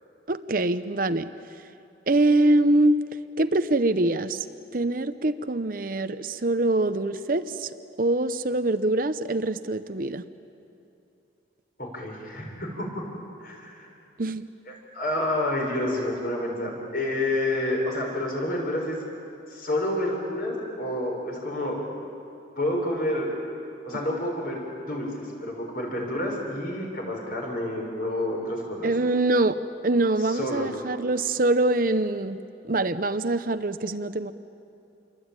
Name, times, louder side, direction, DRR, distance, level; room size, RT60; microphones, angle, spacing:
voice 1, 0.3-1.3 2.1-3.0 3.4-4.5 4.7-7.7 8.0-10.2 14.2-14.4 28.8-29.6 29.8-32.4 32.7-34.3, right 2 dB, 50° right, 11 dB, 0.7 m, -24 dB
voice 2, 11.8-13.0 13.4-13.9 14.7-19.0 19.5-21.8 22.6-23.3 23.8-24.6 24.9-28.9 30.2-30.7, left 1 dB, 50° left, 0 dB, 6.4 m, -29 dB
28.0 x 23.5 x 9.0 m, 2.7 s
head